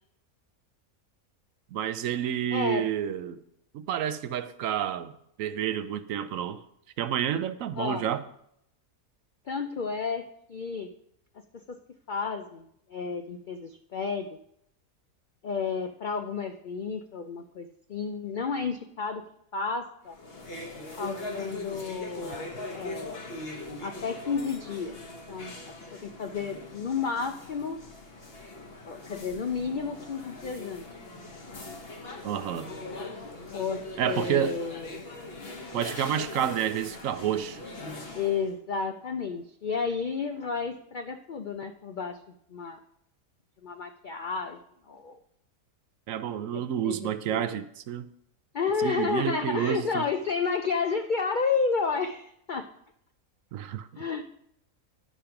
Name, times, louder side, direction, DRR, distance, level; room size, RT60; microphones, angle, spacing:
voice 1, 1.7-3.4 3.7-5.1 5.4-6.6 7.0-8.2 32.2-32.7 34.0-34.6 35.7-37.6 46.1-48.1 48.8-50.0 53.5-53.9, right 10 dB, 70° right, 0.9 m, -29 dB
voice 2, 2.5-2.8 7.8-8.0 9.5-10.2 10.5-10.9 11.7-11.8 12.1-12.6 12.9-14.3 15.4-19.2 19.5-20.1 21.0-22.5 22.7-23.2 23.8-25.0 25.3-25.7 26.0-27.8 28.8-30.9 33.5-35.0 38.1-42.2 42.5-42.8 43.6-44.6 44.9-45.2 46.8-47.5 48.5-52.6 54.0-54.3, left 5 dB, 85° left, 0.4 m, -31 dB
sound 1, 20.1-38.5, left 2 dB, 45° left, 1.3 m, -41 dB
10.0 x 5.1 x 5.8 m
omnidirectional pair, 1.5 m